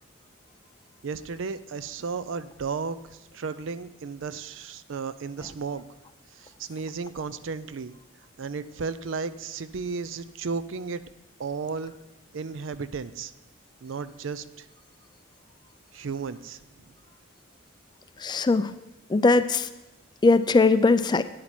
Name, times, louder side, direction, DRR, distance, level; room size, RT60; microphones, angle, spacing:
voice 1, 1.0-5.9 6.3-8.0 8.4-11.0 11.4-11.9 12.3-13.3 13.8-14.7 15.9-16.9, right 5 dB, 70° right, 14 dB, 0.5 m, -34 dB
voice 2, 18.2-18.7 19.1-19.7 20.2-21.2, left 3 dB, 20° left, 12 dB, 0.3 m, -20 dB
9.3 x 8.7 x 4.3 m, 1.0 s
head